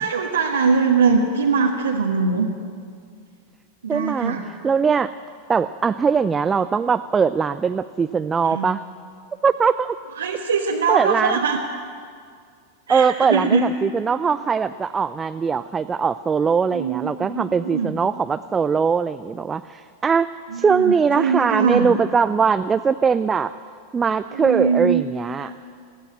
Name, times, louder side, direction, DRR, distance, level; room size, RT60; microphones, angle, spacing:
voice 1, 0.0-2.5 3.8-4.4 8.4-8.7 10.2-11.6 12.9-13.7 16.7-17.9 20.5-21.9 24.3-25.0 25.3-25.5, right 5 dB, 70° right, -1 dB, 1.5 m, -22 dB
voice 2, 3.9-4.4 4.6-5.1 5.5-8.8 9.4-10.0 10.9-11.4 12.9-20.3 20.5-23.5 23.9-25.5, right 6 dB, 20° right, 12 dB, 0.4 m, -21 dB
21.5 x 15.0 x 8.9 m, 2.2 s
figure-of-eight pair, 90°, 0 cm